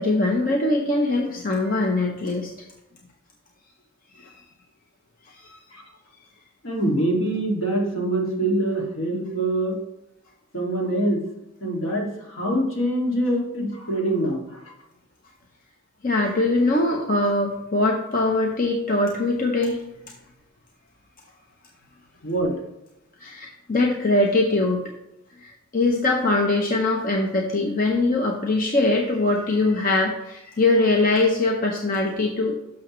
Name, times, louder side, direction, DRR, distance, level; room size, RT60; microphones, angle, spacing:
voice 1, 0.0-2.5 4.1-4.3 5.4-5.6 16.0-19.8 23.2-24.9 25.4-32.6, left 2 dB, 40° left, 1 dB, 0.8 m, -22 dB
voice 2, 6.6-9.8 10.5-11.2 11.6-14.6 22.2-22.5, right 1 dB, 70° left, -1 dB, 2.2 m, -24 dB
12.0 x 6.3 x 3.1 m, 0.90 s
head